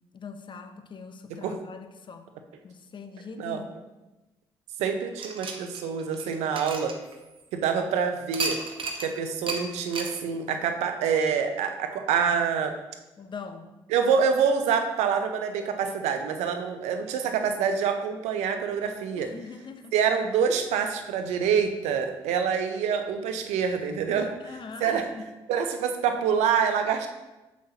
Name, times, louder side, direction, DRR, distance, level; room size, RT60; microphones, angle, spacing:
voice 1, 0.1-2.3 2.6-3.8 13.2-13.7 19.2-20.0 24.1-25.3, left 5 dB, 45° left, 8 dB, 0.7 m, -42 dB
voice 2, 4.8-6.9 7.5-8.6 9.0-12.7 13.9-19.3 19.9-24.3 24.8-25.0 25.5-27.1, right 6 dB, 80° right, 6 dB, 0.7 m, -26 dB
sound 1, 5.2-7.6 8.3-9.1 9.5-9.6 9.9-10.2, right 3 dB, 50° right, 1.0 m, -33 dB
7.2 x 5.8 x 2.8 m, 1.0 s
hypercardioid pair, 50°, 11 cm